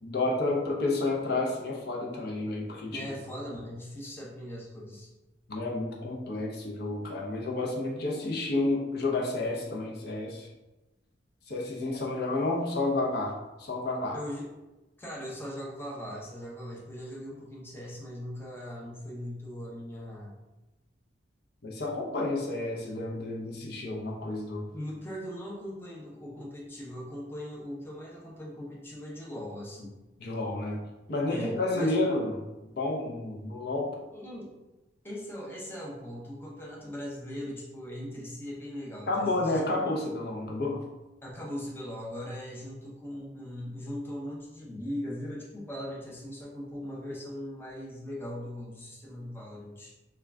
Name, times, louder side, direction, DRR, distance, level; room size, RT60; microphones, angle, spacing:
voice 1, 0.0-3.1 5.5-10.5 11.5-14.2 21.6-24.7 30.2-30.8 31.1-32.3 32.8-33.9 39.1-40.8, left 2 dB, 60° left, -2 dB, 0.6 m, -30 dB
voice 2, 2.9-5.1 14.1-14.5 15.0-20.4 24.7-29.9 31.3-31.9 34.1-34.5 35.0-39.8 41.2-49.9, equal, 10° left, -4 dB, 0.6 m, -39 dB
3.5 x 2.3 x 3.4 m, 1.1 s
head